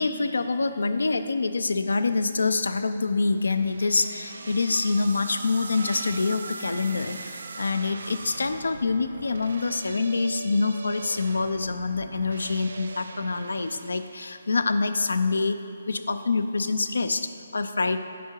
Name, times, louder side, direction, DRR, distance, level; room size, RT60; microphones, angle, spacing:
voice 1, 0.0-15.6 15.9-18.0, left 3 dB, 85° left, 9 dB, 0.4 m, -26 dB
sound 1, 3.4-14.7, right 3 dB, 75° right, 0.5 m, -40 dB
10.0 x 3.7 x 4.5 m, 2.7 s
hypercardioid pair, 155°, 0 cm